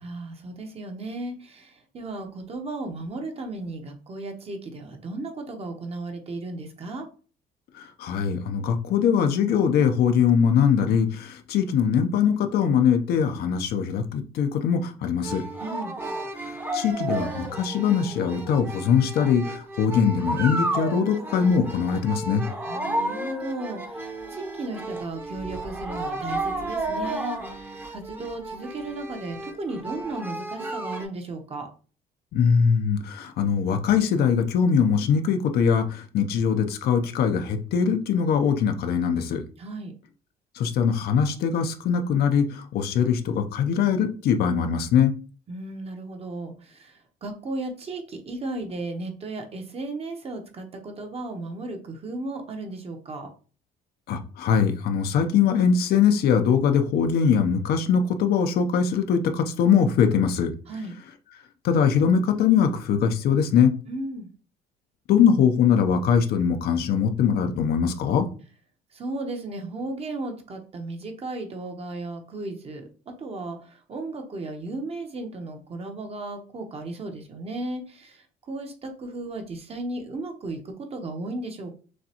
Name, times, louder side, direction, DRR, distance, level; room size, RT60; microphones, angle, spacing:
voice 1, 0.0-7.1 15.6-15.9 22.7-31.7 39.6-39.9 45.5-53.3 60.7-60.9 63.9-64.3 68.9-81.7, right 2 dB, 35° right, 4 dB, 1.0 m, -35 dB
voice 2, 8.0-15.4 16.7-22.4 32.3-39.4 40.6-45.1 54.1-60.5 61.6-63.7 65.1-68.3, left 7 dB, 70° left, 6 dB, 0.7 m, -22 dB
sound 1, 15.2-31.0, right 2 dB, 10° right, 0.8 m, -32 dB
6.4 x 2.3 x 2.9 m, 0.39 s
cardioid pair, 110°, 17 cm